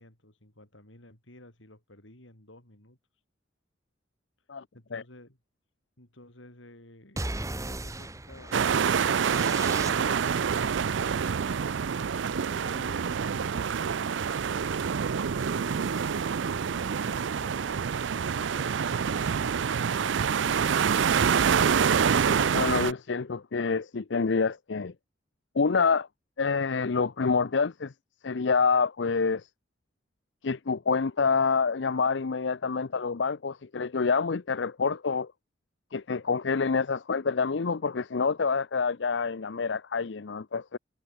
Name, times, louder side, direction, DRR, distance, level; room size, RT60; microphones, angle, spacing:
voice 1, 0.0-3.0 4.7-5.4 6.0-10.7 11.9-14.2 15.1-20.8, left 1 dB, 90° left, 6.3 m, -53 dB
sound 1, 7.2-10.4, right 2 dB, 15° right, 1.3 m, -37 dB
sound 2, 8.5-22.9, right 6 dB, 80° right, 0.5 m, -26 dB
voice 2, 22.2-24.9 25.5-26.1 26.4-27.9 28.2-29.5 30.4-35.3 35.9-40.8, left 5 dB, 70° left, 0.6 m, -27 dB
head